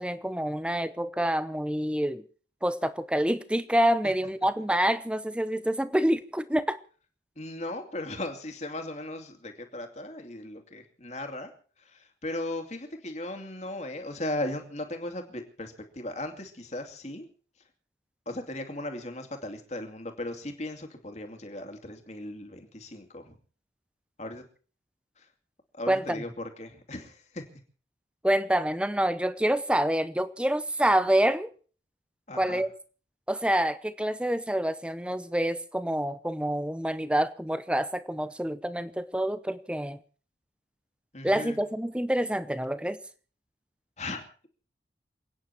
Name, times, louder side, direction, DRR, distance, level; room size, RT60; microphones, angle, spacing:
voice 1, 0.0-2.2 2.6-6.8 25.9-26.2 28.2-31.5 32.3-32.7 33.3-40.0 41.2-43.0, right 1 dB, 5° right, 0.7 m, -27 dB
voice 2, 7.4-11.5 11.8-17.3 18.3-23.4 24.2-24.4 25.2-25.3 25.7-27.4 32.3-32.6 41.1-41.6 44.0-44.2, left 1 dB, 35° left, 2.5 m, -37 dB
28.5 x 9.6 x 4.5 m
head